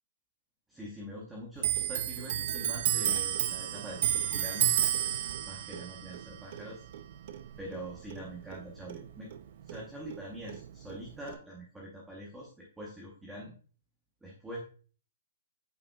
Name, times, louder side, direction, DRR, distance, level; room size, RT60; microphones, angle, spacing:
voice 1, 0.7-4.7 5.4-6.8 7.6-9.3 9.6-13.6 14.2-14.6, equal, 5° right, -3 dB, 0.9 m, -44 dB
Clock, 1.6-8.6 8.9-10.2 10.5-11.3, right 11 dB, 45° right, 0.4 m, -32 dB
8.5 x 4.9 x 2.3 m, 0.41 s
hypercardioid pair, 175°, 0 cm